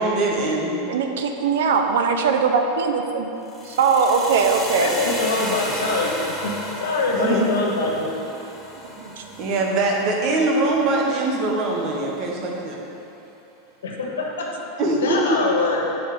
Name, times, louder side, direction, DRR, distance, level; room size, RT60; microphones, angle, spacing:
voice 1, 0.0-0.7 7.2-7.4 9.4-12.8 14.8-15.2, right 2 dB, 50° right, -1 dB, 1.2 m, -22 dB
voice 2, 0.9-3.4 3.6-5.0 8.8-9.4, right 5 dB, 80° right, 4 dB, 0.6 m, -21 dB
sound 1, 3.4-11.5, equal, 10° left, 1.3 m, -34 dB
voice 3, 4.7-6.5 6.8-8.1 13.8-14.7 15.0-15.9, left 3 dB, 85° left, -1 dB, 1.2 m, -24 dB
7.2 x 4.3 x 5.0 m, 3.0 s
hypercardioid pair, 115°, 0 cm